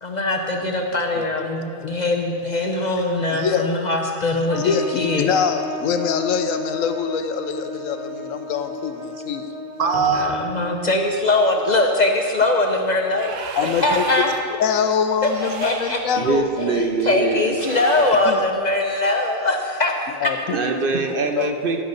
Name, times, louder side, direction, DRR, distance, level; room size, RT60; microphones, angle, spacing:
voice 1, 0.0-5.4 9.9-14.3 15.2-16.0 16.6-19.9 20.2-20.3, left 2 dB, 45° left, 2 dB, 0.6 m, -22 dB
voice 2, 3.3-3.7 4.6-9.5 13.5-14.0 14.6-16.8 18.3-18.4 20.2-20.6 21.4-21.5, left 7 dB, 75° left, 8 dB, 1.0 m, -24 dB
Trumpet, 4.5-11.0, left 2 dB, 30° left, 1.0 m, -34 dB
voice 3, 9.8-10.4 16.2-17.6 20.5-21.8, right 4 dB, 55° right, 5 dB, 0.7 m, -22 dB
sound 1, 13.1-14.6 15.2-16.2 17.5-18.5, right 5 dB, 70° right, 1.1 m, -34 dB
11.0 x 10.5 x 4.0 m, 2.6 s
omnidirectional pair, 1.4 m